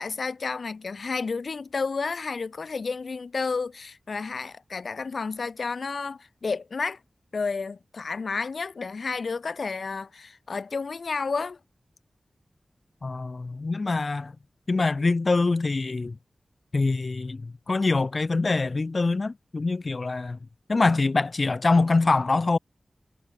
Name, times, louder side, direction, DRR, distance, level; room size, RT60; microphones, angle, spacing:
voice 1, 0.0-7.0 7.3-11.6, left 4 dB, 70° left, 1.7 m, -31 dB
voice 2, 13.0-14.3 14.7-16.2 16.7-20.4 20.7-22.6, left 3 dB, 50° left, 0.9 m, -24 dB
wide cardioid pair, 75°, 0 cm